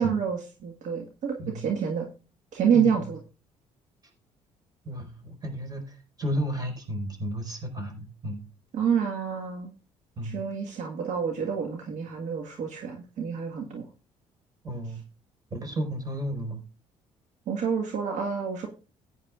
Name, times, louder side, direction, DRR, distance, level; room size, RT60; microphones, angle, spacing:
voice 1, 0.0-2.1 2.5-3.2 8.7-9.7 10.2-13.9 17.5-18.7, right 7 dB, 70° right, 2 dB, 1.7 m, -28 dB
voice 2, 1.4-1.7 2.7-3.0 4.8-8.4 10.2-10.4 14.6-15.0 15.5-16.6, equal, 30° right, 3 dB, 5.0 m, -33 dB
15.0 x 9.6 x 2.4 m, 0.34 s
supercardioid pair, 75°, 13 cm